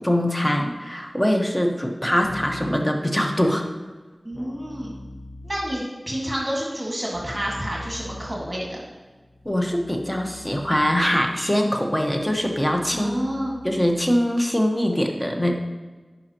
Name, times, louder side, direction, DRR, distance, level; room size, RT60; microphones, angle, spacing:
voice 1, 0.0-3.7 9.4-13.1 13.6-15.5, equal, 15° left, 2 dB, 1.1 m, -22 dB
Keyboard (musical), 2.2-2.9 4.3-5.9 7.1-14.2, left 1 dB, 40° left, 1.2 m, -43 dB
voice 2, 4.2-4.9 5.4-8.8 12.9-13.6, equal, 30° right, -4 dB, 1.9 m, -29 dB
9.6 x 5.6 x 3.0 m, 1.3 s
wide cardioid pair, 40°, 0 cm